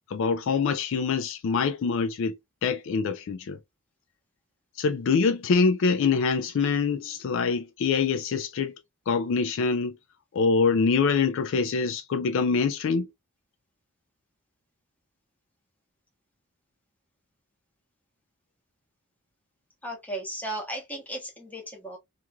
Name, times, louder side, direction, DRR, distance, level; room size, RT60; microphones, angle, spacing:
voice 1, 0.1-2.3 2.6-3.6 4.8-8.8 9.1-10.0 10.3-13.1, left 5 dB, 60° left, 0.3 m, -25 dB
voice 2, 19.8-22.0, right 1 dB, 5° left, 0.9 m, -35 dB
3.0 x 2.5 x 2.2 m
head